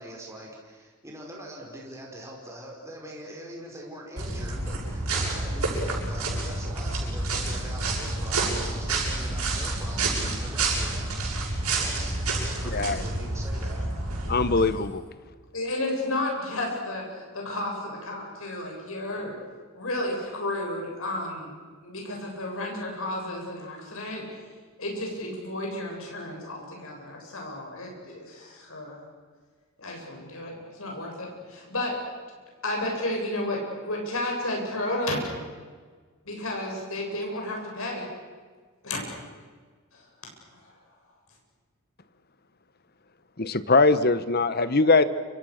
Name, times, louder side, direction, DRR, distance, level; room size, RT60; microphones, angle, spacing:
voice 1, 0.0-11.2 11.7-14.0, right 1 dB, 15° right, -2 dB, 5.2 m, -42 dB
sound 1, 4.2-14.7, right 2 dB, 80° right, 7.8 m, -29 dB
voice 2, 14.3-15.0 43.4-45.0, left 3 dB, 45° left, 13 dB, 1.2 m, -21 dB
voice 3, 15.5-19.3 19.7-21.6 21.8-24.4 24.8-29.0 29.8-32.0 32.6-35.2 36.2-38.1 38.8-39.0 39.9-40.0 40.5-40.7, left 1 dB, 70° left, 0 dB, 7.8 m, -32 dB
29.5 x 25.5 x 6.7 m, 1.5 s
head